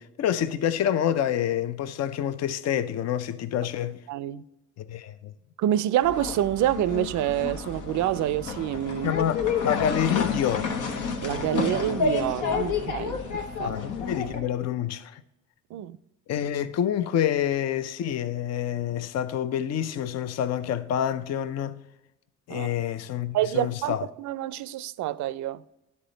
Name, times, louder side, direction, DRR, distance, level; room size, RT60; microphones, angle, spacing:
voice 1, 0.0-4.0 4.8-5.3 9.0-10.8 13.6-15.2 16.3-21.8 22.5-24.1, left 10 dB, 60° left, 0.5 m, -27 dB
voice 2, 4.1-4.4 5.6-9.2 11.2-13.8 15.7-16.0 22.5-22.7 23.3-25.6, right 12 dB, 75° right, 0.4 m, -27 dB
sound 1, 6.0-14.4, left 5 dB, 90° left, 1.0 m, -30 dB
10.5 x 4.2 x 3.9 m
cardioid pair, 90°, 30 cm